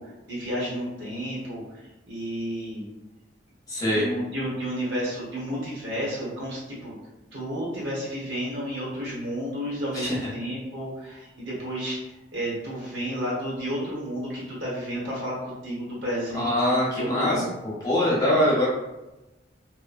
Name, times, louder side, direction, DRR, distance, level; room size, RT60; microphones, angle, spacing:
voice 1, 0.0-2.9 3.9-6.9 7.3-12.0 12.3-17.5 18.2-18.4, equal, 75° right, -6 dB, 1.2 m, -32 dB
voice 2, 3.7-4.0 9.9-10.2 16.3-18.7, left 1 dB, 20° left, -7 dB, 0.8 m, -23 dB
2.9 x 2.1 x 2.4 m, 1.0 s
head